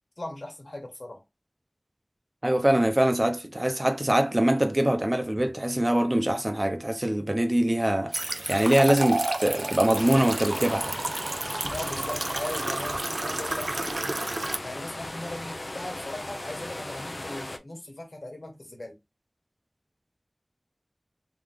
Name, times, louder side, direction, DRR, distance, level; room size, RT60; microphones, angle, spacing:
voice 1, 0.2-1.2 11.7-14.0 14.6-19.0, left 1 dB, 85° left, 1.5 m, -38 dB
voice 2, 2.4-10.9, right 1 dB, 35° right, 0.8 m, -23 dB
Filling cup up with water, 8.1-14.6, right 2 dB, 90° right, 0.4 m, -31 dB
sound 1, 9.9-17.6, left 1 dB, 65° left, 0.6 m, -37 dB
3.5 x 3.1 x 3.6 m
wide cardioid pair, 45°, 0 cm